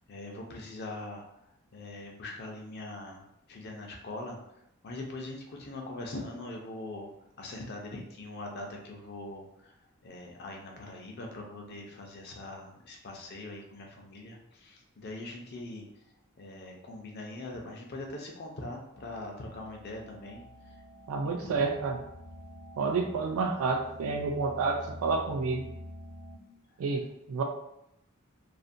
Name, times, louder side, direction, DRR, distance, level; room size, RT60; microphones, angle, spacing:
voice 1, 0.1-1.4 1.7-4.6 4.8-7.1 7.4-9.7 10.0-15.9 16.4-20.7 21.4-21.7, left 2 dB, 50° left, 1 dB, 0.5 m, -42 dB
sound 1, 18.9-26.4, equal, 80° left, 0.7 m, -48 dB
voice 2, 21.1-22.0 22.8-25.7 26.8-27.4, right 4 dB, 75° right, 3 dB, 0.3 m, -29 dB
2.4 x 2.1 x 2.5 m, 0.81 s
head